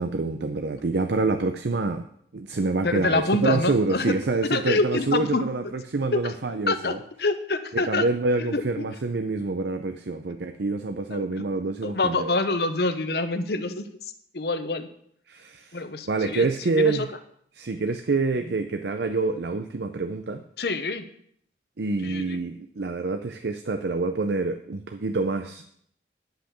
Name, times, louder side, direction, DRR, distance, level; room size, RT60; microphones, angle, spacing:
voice 1, 0.0-2.1 2.3-7.0 7.7-12.3 15.3-15.8 16.1-17.1 17.5-20.4 21.8-25.6, right 3 dB, 75° right, 8 dB, 0.6 m, -27 dB
voice 2, 2.8-4.1 4.5-5.4 6.1-6.2 6.7-6.9 7.2-8.0 8.4-8.6 11.1-11.2 11.8-13.9 14.3-14.9 15.7-16.4 16.8-17.0 20.6-21.0 22.0-22.4, left 3 dB, 65° left, 9 dB, 0.9 m, -26 dB
10.0 x 5.7 x 7.2 m, 0.67 s
head